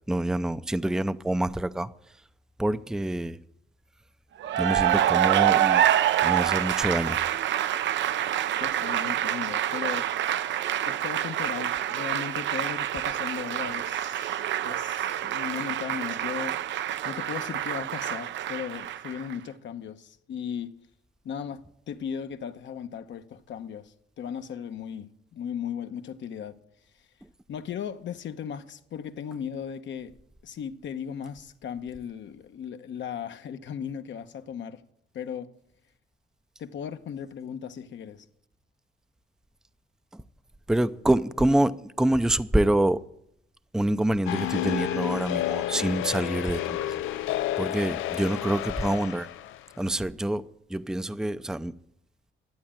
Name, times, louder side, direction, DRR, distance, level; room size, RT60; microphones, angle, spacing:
voice 1, 0.0-1.9 2.6-3.4 4.6-5.9 6.2-7.2 40.1-40.2 40.7-43.0 43.7-47.0 47.6-49.3 49.8-50.4 50.7-51.7, right 1 dB, 5° right, 0.5 m, -26 dB
Cheering / Applause, 4.4-19.3, right 11 dB, 65° right, 0.6 m, -26 dB
voice 2, 8.6-10.1 10.9-16.7 17.0-20.7 21.2-26.6 27.5-30.1 30.4-34.8 35.1-35.5 36.6-38.3, left 8 dB, 70° left, 1.1 m, -37 dB
sound 1, 44.3-49.6, left 14 dB, 85° left, 0.6 m, -30 dB
12.5 x 8.5 x 8.9 m
cardioid pair, 90°, 20 cm